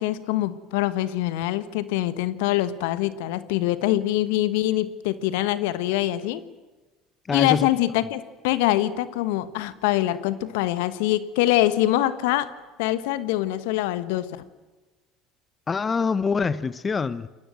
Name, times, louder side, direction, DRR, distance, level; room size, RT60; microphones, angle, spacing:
voice 1, 0.0-6.4 7.3-12.5 12.8-14.4, left 14 dB, 70° left, 1.4 m, -24 dB
voice 2, 7.3-7.7 15.7-17.3, left 5 dB, 30° left, 1.0 m, -25 dB
28.5 x 23.0 x 7.8 m
hypercardioid pair, 70°, 0 cm